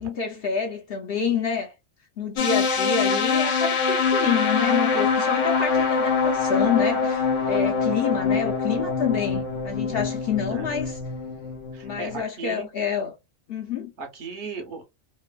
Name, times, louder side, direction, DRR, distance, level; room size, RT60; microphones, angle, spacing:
voice 1, 0.0-1.7 2.2-11.0 11.8-13.1 13.5-13.9, left 7 dB, 60° left, 0.7 m, -27 dB
sound 1, 2.4-12.2, left 5 dB, 75° left, 1.1 m, -24 dB
voice 2, 11.7-12.7 14.0-14.8, right 4 dB, 65° right, 1.1 m, -36 dB
3.0 x 2.0 x 2.3 m
omnidirectional pair, 1.3 m